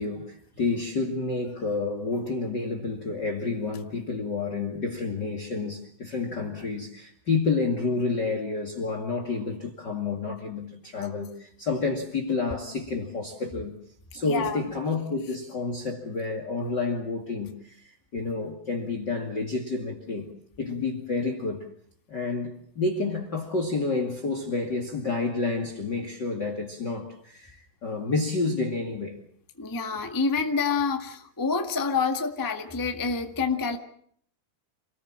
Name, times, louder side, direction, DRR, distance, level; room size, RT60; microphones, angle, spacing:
voice 1, 0.0-13.7 14.1-20.3 20.6-21.6 22.1-29.2, left 3 dB, 35° left, 2.5 m, -29 dB
voice 2, 14.3-14.6 29.6-33.8, left 5 dB, 15° left, 0.8 m, -27 dB
28.0 x 19.5 x 7.4 m
omnidirectional pair, 4.1 m